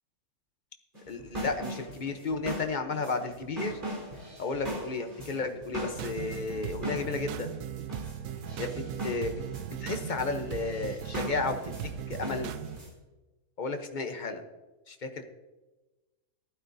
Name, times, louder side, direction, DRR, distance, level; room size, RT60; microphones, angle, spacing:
sound 1, 0.9-12.9, right 1 dB, 30° right, 3.5 m, -40 dB
voice 1, 1.1-3.8 4.4-7.5 8.6-9.4 9.8-12.5 13.6-14.4 14.9-15.3, left 4 dB, 35° left, 6 dB, 0.9 m, -33 dB
sound 2, 5.9-12.8, right 10 dB, 85° right, 1.1 m, -38 dB
15.0 x 12.0 x 2.7 m, 1.1 s
omnidirectional pair, 1.6 m